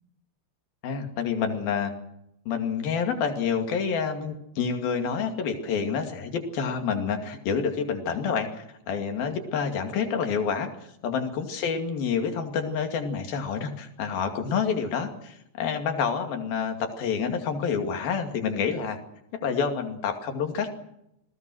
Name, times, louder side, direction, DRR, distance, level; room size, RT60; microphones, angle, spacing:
voice 1, 0.8-1.9 2.5-10.7 11.0-19.0 19.3-20.7, left 6 dB, 65° left, 5 dB, 4.1 m, -28 dB
28.0 x 19.5 x 6.3 m, 0.80 s
omnidirectional pair, 4.8 m